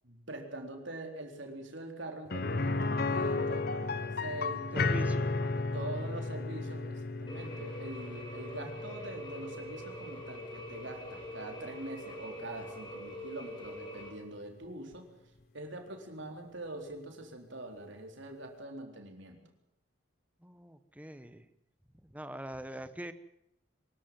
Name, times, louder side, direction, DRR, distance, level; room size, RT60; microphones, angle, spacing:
voice 1, 0.0-4.9 5.7-15.1 15.5-19.4, right 1 dB, 60° right, 3 dB, 4.1 m, -44 dB
sound 1, 2.3-12.1 12.4-12.5 14.9-15.0, left 3 dB, 45° left, 1.0 m, -34 dB
voice 2, 4.7-5.9 20.4-21.5 22.0-23.1, right 1 dB, 5° right, 11 dB, 1.0 m, -43 dB
sound 2, 7.3-14.1, equal, 20° left, 5.0 m, -44 dB
24.0 x 13.5 x 9.6 m, 0.80 s
head